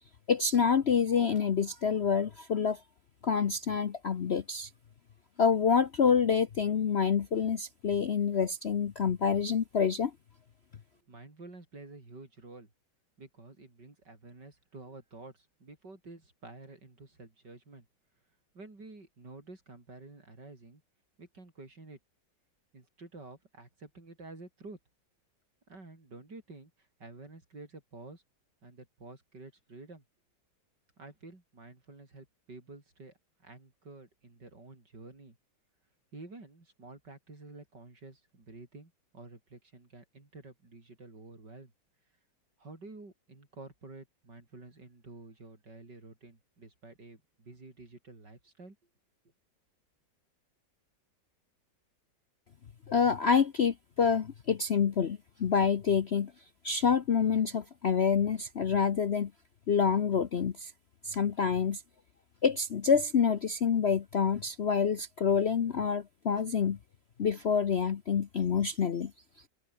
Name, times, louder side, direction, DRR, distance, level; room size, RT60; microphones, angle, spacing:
voice 1, 0.3-2.8 3.2-4.7 5.4-10.1 52.9-56.3 56.6-59.3 59.7-60.7 61.0-61.8 62.4-66.8 67.2-69.1, left 6 dB, 50° left, 0.8 m, -27 dB
voice 2, 11.1-12.7 13.2-17.9 18.5-20.8 21.2-22.0 22.7-24.8 25.7-28.2 28.6-30.0 31.0-33.1 33.4-35.4 36.1-41.7 42.6-48.8, right 3 dB, 65° right, 6.1 m, -50 dB
open air
omnidirectional pair, 2.0 m